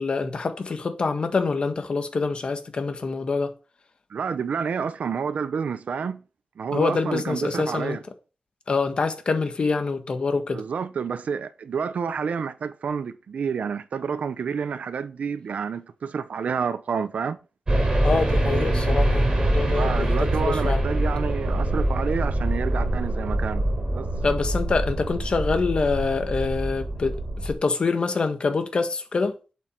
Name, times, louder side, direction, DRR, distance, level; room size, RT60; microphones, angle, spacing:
voice 1, 0.0-3.5 6.7-8.0 8.7-10.6 18.0-20.8 24.2-29.3, left 4 dB, 45° left, 1.6 m, -25 dB
voice 2, 4.1-6.2 6.6-8.0 10.5-17.4 19.7-24.1, right 6 dB, 75° right, 0.9 m, -29 dB
sound 1, 17.7-27.5, right 1 dB, 30° right, 4.3 m, -24 dB
11.5 x 8.1 x 4.6 m
wide cardioid pair, 175°, 2 cm